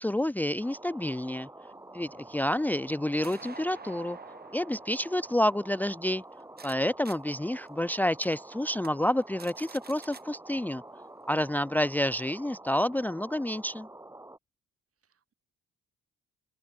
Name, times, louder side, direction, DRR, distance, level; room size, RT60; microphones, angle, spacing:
voice 1, 0.0-1.5 1.9-4.2 4.5-6.2 6.6-10.8 11.3-13.9, left 1 dB, 5° left, 0.9 m, -29 dB
sound 1, 0.6-14.4, right 1 dB, 10° right, 2.7 m, -48 dB
voice 2, 1.6-2.3 15.0-15.3, right 7 dB, 50° right, 7.6 m, -67 dB
sound 2, 2.0-6.7 7.0-7.2 7.7-7.8 8.2-8.4 8.8-8.9 9.2-10.2, right 5 dB, 30° right, 4.5 m, -50 dB
cardioid pair, 90°, 30 cm